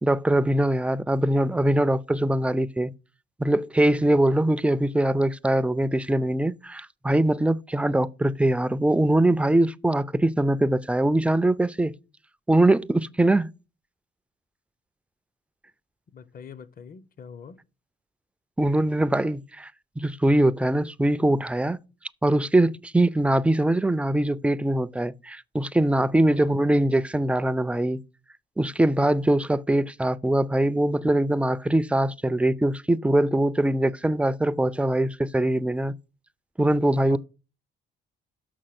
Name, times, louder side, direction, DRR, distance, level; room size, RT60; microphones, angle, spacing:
voice 1, 0.0-2.9 3.4-11.9 12.5-13.5 18.6-19.7 20.0-21.8 22.2-28.0 28.6-35.9 36.6-37.2, right 1 dB, 5° right, 0.4 m, -22 dB
voice 2, 16.1-17.6 26.2-26.5 37.0-37.2, left 6 dB, 45° left, 0.8 m, -43 dB
6.4 x 6.1 x 5.9 m
cardioid pair, 90°, 20 cm